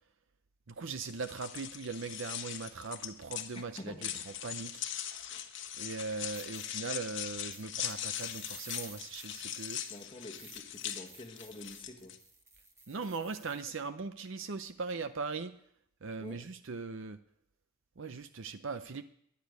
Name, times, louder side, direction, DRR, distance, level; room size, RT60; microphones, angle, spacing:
voice 1, 0.7-4.9 5.8-9.8 12.9-15.5 16.0-17.2 18.0-19.0, right 4 dB, 60° right, 10 dB, 0.6 m, -40 dB
sound 1, 1.0-12.2, left 10 dB, 55° left, 1.2 m, -41 dB
voice 2, 3.5-4.1 5.3-5.5 9.9-12.2 16.2-16.5, left 1 dB, 25° left, 3 dB, 1.2 m, -48 dB
sound 2, 6.3-6.7 7.5-13.6, right 2 dB, 15° right, 1.4 m, -54 dB
13.0 x 10.5 x 9.3 m, 0.74 s
head